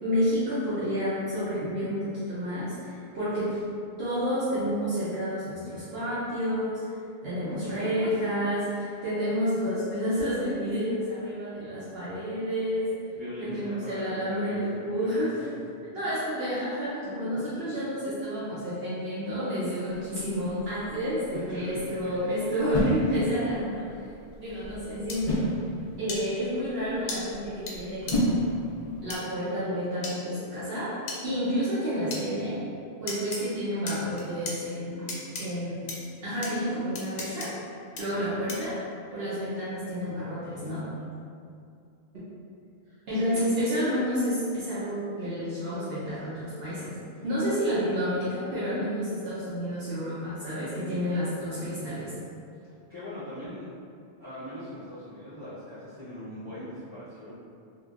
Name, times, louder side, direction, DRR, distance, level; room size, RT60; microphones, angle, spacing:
voice 1, 0.0-3.6 4.0-6.8 7.2-8.7 9.0-12.9 13.4-15.5 15.9-23.9 24.4-25.4 26.0-28.4 29.0-30.9 31.2-32.6 33.0-35.1 35.4-35.9 36.2-37.5 38.0-38.8 39.1-40.9 42.1-42.2 43.1-46.9 47.2-52.1, equal, 65° right, -11 dB, 0.9 m, -30 dB
voice 2, 7.5-7.9 9.5-9.7 13.1-15.5 17.0-17.5 21.3-22.5 38.0-38.2 42.8-43.4 47.1-47.4 52.9-53.7 54.2-57.4, equal, 25° right, -20 dB, 1.6 m, -41 dB
sound 1, 19.9-29.2, equal, 50° left, 0.4 m, -33 dB
sound 2, 25.1-25.2 26.1-26.2 27.1-27.2 27.7-27.8 28.1-28.2 29.1-29.2 30.0-30.1 31.1-31.2 32.1-32.2 33.1-33.4 33.9-34.5 35.1-35.4 35.9-36.0 36.4-36.5 36.9-37.5 38.0-38.1 38.5-38.7, left 3 dB, 85° left, 0.9 m, -35 dB
3.1 x 2.1 x 2.4 m, 2.4 s
omnidirectional pair, 1.1 m